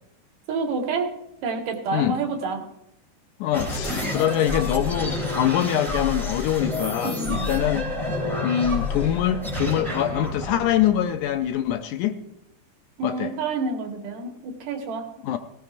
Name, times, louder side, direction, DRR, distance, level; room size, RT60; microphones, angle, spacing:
voice 1, 0.5-1.1 1.4-2.7 7.0-7.5 13.0-15.0, right 4 dB, 75° right, 2 dB, 3.3 m, -28 dB
voice 2, 3.4-7.9 8.4-12.2 13.0-13.3 15.2-15.4, left 10 dB, 75° left, 8 dB, 1.9 m, -24 dB
sound 1, 3.5-11.7, left 2 dB, ahead, 3.4 m, -29 dB
18.0 x 16.0 x 2.6 m, 0.82 s
omnidirectional pair, 3.9 m